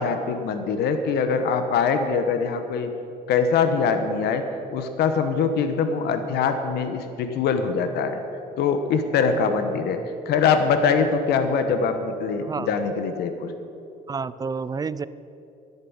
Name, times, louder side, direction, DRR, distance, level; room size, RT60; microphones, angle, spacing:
voice 1, 0.0-2.9 3.3-4.5 4.7-8.2 8.6-10.0 10.2-13.5, left 5 dB, 75° left, 8 dB, 1.2 m, -23 dB
voice 2, 9.7-10.1 12.4-12.8 14.1-15.1, right 5 dB, 20° right, 17 dB, 0.4 m, -30 dB
11.5 x 9.5 x 8.8 m, 2.8 s
cardioid pair, 110°, 17 cm